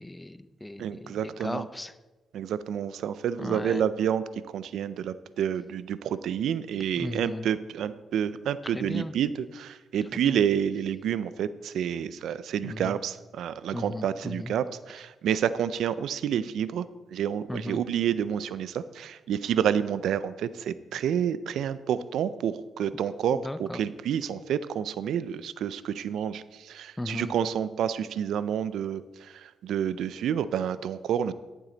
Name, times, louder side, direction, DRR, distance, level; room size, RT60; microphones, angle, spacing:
voice 1, 0.0-1.9 3.4-3.8 7.0-7.5 8.6-9.1 10.1-10.4 12.6-13.0 13.7-14.5 17.5-17.8 23.3-23.8 27.0-27.3, left 1 dB, 10° left, 13 dB, 0.5 m, -36 dB
voice 2, 0.8-1.6 2.3-16.8 17.1-31.3, right 9 dB, 85° right, 15 dB, 0.4 m, -29 dB
12.0 x 7.4 x 3.9 m, 1.2 s
cardioid pair, 80°, 0 cm